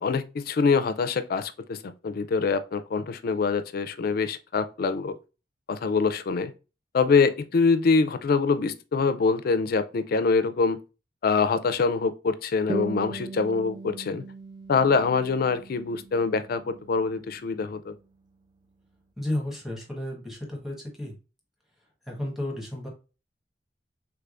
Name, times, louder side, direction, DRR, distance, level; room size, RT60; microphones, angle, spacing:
voice 1, 0.0-5.2 5.7-6.5 6.9-10.8 11.2-14.2 14.7-17.9, left 4 dB, 55° left, 0.4 m, -24 dB
sound 1, 12.7-17.7, right 3 dB, 25° right, 0.4 m, -39 dB
voice 2, 19.2-21.1 22.1-22.9, left 1 dB, ahead, 1.1 m, -32 dB
3.5 x 3.4 x 2.4 m
head